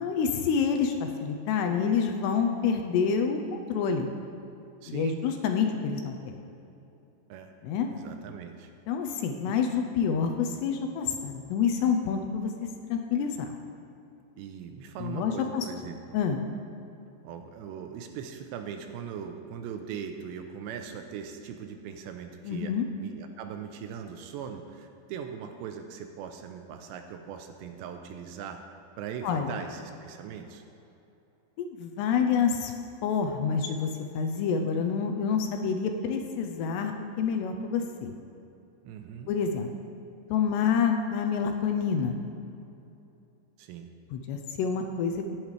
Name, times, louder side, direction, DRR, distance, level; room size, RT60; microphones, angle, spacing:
voice 1, 0.0-4.1 4.9-6.3 7.6-7.9 8.9-12.5 12.9-13.5 15.0-15.6 16.1-16.4 22.5-22.9 29.2-29.5 31.6-32.7 33.0-38.1 39.3-39.7 40.3-42.2 44.1-45.2, left 6 dB, 80° left, 5 dB, 2.6 m, -27 dB
voice 2, 4.8-5.2 7.3-7.5 7.9-8.7 9.5-9.6 14.4-16.2 17.2-28.6 29.0-30.6 38.9-39.3 43.6-43.9, right 7 dB, 80° right, 6 dB, 2.8 m, -40 dB
17.0 x 9.0 x 3.2 m, 2.8 s
omnidirectional pair, 5.2 m